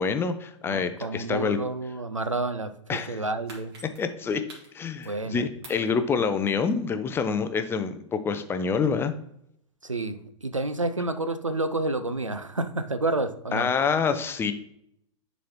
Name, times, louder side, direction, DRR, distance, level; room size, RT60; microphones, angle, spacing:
voice 1, 0.0-1.6 2.9-3.2 4.0-4.4 4.7-9.1 13.5-14.5, left 5 dB, 15° left, 0.5 m, -27 dB
voice 2, 0.7-3.7 5.0-5.4 9.8-13.7, right 2 dB, 90° right, 0.5 m, -29 dB
sound 1, 3.1-5.3 5.6-6.9 7.3-7.4, right 2 dB, 55° right, 2.3 m, -48 dB
10.0 x 4.1 x 3.0 m
figure-of-eight pair, 95°, 16 cm